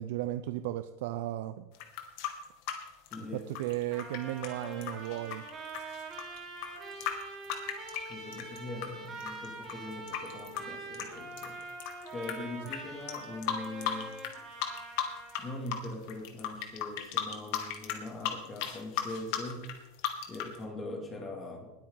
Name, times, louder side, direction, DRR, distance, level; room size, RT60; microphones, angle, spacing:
voice 1, 0.0-1.7 3.3-5.4, right 14 dB, 70° right, 11 dB, 0.6 m, -35 dB
sound 1, 1.7-8.9 9.2-12.3 12.7-12.8 13.1-14.3 14.6-15.4 15.7-20.6, left 10 dB, 60° left, 2.3 m, -35 dB
voice 2, 3.1-3.5 8.1-11.6 12.1-14.1 15.4-19.7 20.3-21.7, left 2 dB, 20° left, 1 dB, 2.6 m, -41 dB
Trumpet, 3.9-15.5, right 2 dB, 25° right, 4.6 m, -44 dB
20.5 x 8.9 x 4.0 m, 0.97 s
supercardioid pair, 145°, 0 cm